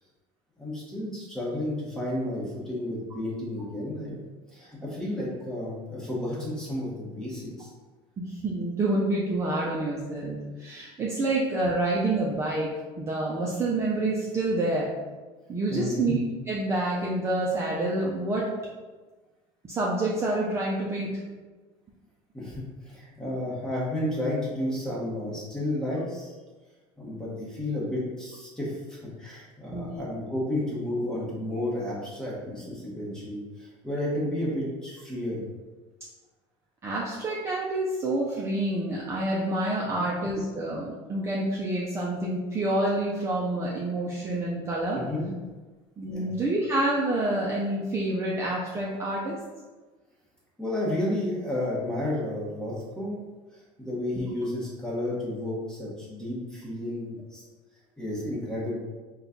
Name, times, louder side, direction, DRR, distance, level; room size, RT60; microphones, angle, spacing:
voice 1, 0.6-4.2 4.5-7.7 15.7-16.1 22.3-26.3 27.0-35.4 40.0-40.1 44.9-45.3 46.1-46.3 50.6-53.2 53.5-57.4 58.0-58.8, left 1 dB, 5° left, -6 dB, 1.0 m, -32 dB
voice 2, 8.2-14.9 15.5-16.2 16.5-18.5 19.6-21.2 29.7-30.0 36.8-45.0 46.0-49.4, right 2 dB, 20° right, -4 dB, 0.4 m, -28 dB
4.0 x 2.3 x 3.7 m, 1.3 s
cardioid pair, 155°, 13 cm